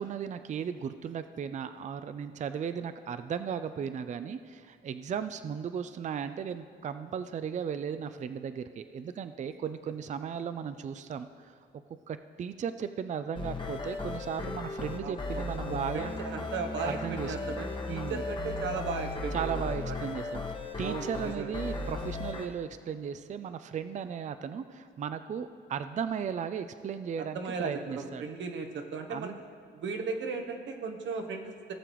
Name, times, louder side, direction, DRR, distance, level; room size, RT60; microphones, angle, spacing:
voice 1, 0.0-11.5 12.1-16.1 16.8-18.2 19.3-28.3 29.1-29.4, right 7 dB, 40° right, 11 dB, 0.4 m, -36 dB
sound 1, 13.4-22.5, left 3 dB, 25° left, 1.1 m, -36 dB
voice 2, 15.0-15.4 15.7-19.5 19.8-20.0 20.8-21.5 27.2-29.3 29.7-31.7, right 4 dB, 70° right, 4 dB, 1.0 m, -36 dB
17.5 x 6.7 x 3.1 m, 2.4 s
cardioid pair, 90°, 20 cm